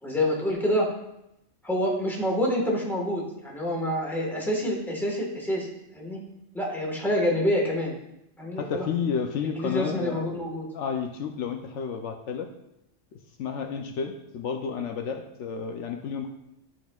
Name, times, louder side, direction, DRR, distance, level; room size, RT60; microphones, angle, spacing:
voice 1, 0.0-0.9 1.6-6.2 6.5-7.9 8.4-8.9 9.4-10.7, equal, ahead, -2 dB, 1.2 m, -27 dB
voice 2, 8.6-10.2 10.7-12.5 13.4-16.3, left 6 dB, 75° left, 4 dB, 0.9 m, -31 dB
10.5 x 4.2 x 2.3 m, 0.83 s
omnidirectional pair, 1.3 m